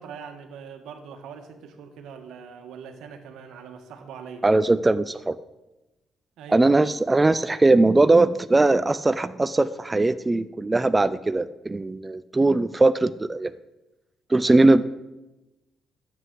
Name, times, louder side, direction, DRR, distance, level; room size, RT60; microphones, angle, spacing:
voice 1, 0.0-4.5 6.4-6.7, right 6 dB, 85° right, 6 dB, 1.5 m, -42 dB
voice 2, 4.4-5.3 6.5-13.5 14.3-14.8, right 2 dB, 20° right, 13 dB, 0.4 m, -20 dB
9.8 x 7.9 x 7.7 m, 1.0 s
cardioid pair, 90°, 0 cm